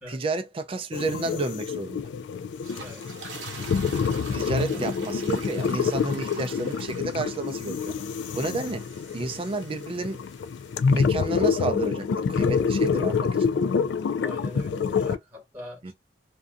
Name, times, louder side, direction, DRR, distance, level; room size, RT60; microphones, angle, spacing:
voice 1, 0.1-2.1 4.3-7.9 8.3-8.8 9.1-10.2 10.9-13.3 15.8-15.9, right 3 dB, 30° right, 0.4 m, -31 dB
sound 1, 0.9-15.2, left 5 dB, 80° left, 0.3 m, -27 dB
sound 2, 2.4-10.8, right 4 dB, 90° right, 0.8 m, -45 dB
voice 2, 2.8-3.1 4.4-4.8 14.2-15.9, left 1 dB, 10° right, 1.2 m, -43 dB
2.6 x 2.3 x 2.4 m
head